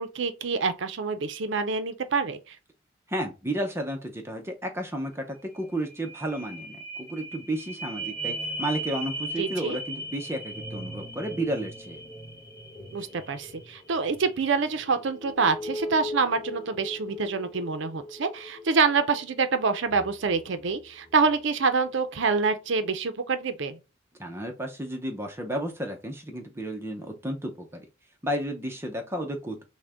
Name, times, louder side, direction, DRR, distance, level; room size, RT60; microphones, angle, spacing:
voice 1, 0.0-2.6 9.4-9.8 12.9-23.8, right 4 dB, 65° right, 0.5 m, -26 dB
voice 2, 3.1-12.0 24.2-27.9 28.2-29.6, right 1 dB, 10° right, 0.6 m, -32 dB
sound 1, 5.1-5.2 5.5-21.4 21.9-22.0, right 1 dB, 15° left, 0.9 m, -39 dB
6.2 x 2.1 x 3.4 m
head